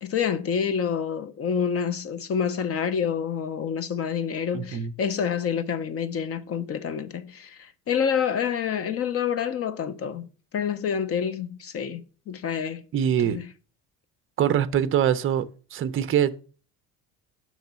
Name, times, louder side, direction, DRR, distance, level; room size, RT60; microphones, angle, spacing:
voice 1, 0.0-12.8 13.3-13.4, left 7 dB, 40° left, 0.6 m, -28 dB
voice 2, 4.5-4.9 12.9-13.4 14.4-15.5 15.7-16.4, right 9 dB, 35° right, 0.5 m, -23 dB
6.4 x 3.1 x 5.7 m
cardioid pair, 135°, 37 cm